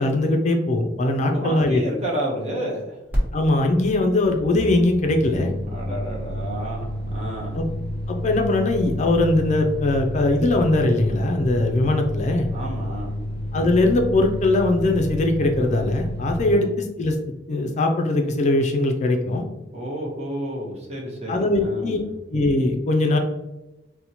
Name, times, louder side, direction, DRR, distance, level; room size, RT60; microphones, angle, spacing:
voice 1, 0.0-1.8 3.3-5.5 7.5-7.7 8.1-12.5 13.5-17.2 17.5-19.4 21.3-22.0 22.3-23.2, left 2 dB, 40° left, 4 dB, 0.4 m, -21 dB
voice 2, 1.2-3.0 5.7-7.6 12.5-13.1 16.4-16.6 19.7-22.1, right 1 dB, 35° right, -2 dB, 0.9 m, -31 dB
sound 1, 3.1-3.2 3.5-16.6, equal, 10° right, 1.0 m, -30 dB
4.1 x 2.1 x 2.8 m, 0.98 s
head